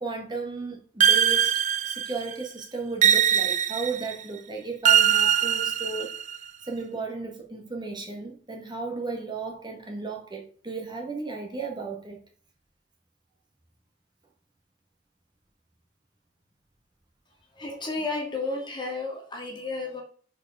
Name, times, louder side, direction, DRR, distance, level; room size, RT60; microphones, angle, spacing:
voice 1, 0.0-1.5 1.8-6.1 6.6-12.2, right 4 dB, 25° right, 1.3 m, -35 dB
sound 1, 1.0-2.3 3.0-4.1 4.8-6.4, right 9 dB, 45° right, 0.4 m, -22 dB
voice 2, 17.5-20.0, left 3 dB, 25° left, 2.0 m, -32 dB
6.4 x 4.7 x 4.7 m
head